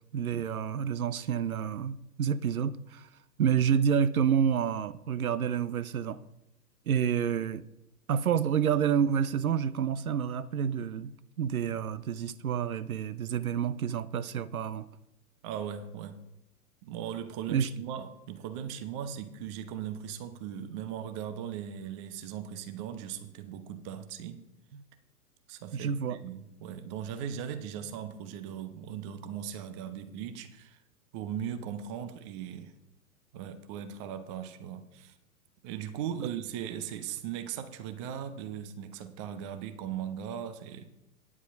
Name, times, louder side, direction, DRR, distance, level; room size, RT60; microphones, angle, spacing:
voice 1, 0.1-3.1 3.4-6.2 6.9-7.6 8.1-14.9 17.5-17.7 24.7-24.8 25.7-26.2 36.2-36.3, right 8 dB, 65° right, 0.7 m, -29 dB
voice 2, 15.4-16.2 16.8-24.4 25.5-30.8 31.1-32.7 33.3-35.1 35.6-40.9, right 9 dB, 20° right, 0.5 m, -38 dB
9.7 x 8.2 x 5.2 m
figure-of-eight pair, 110°, 45 cm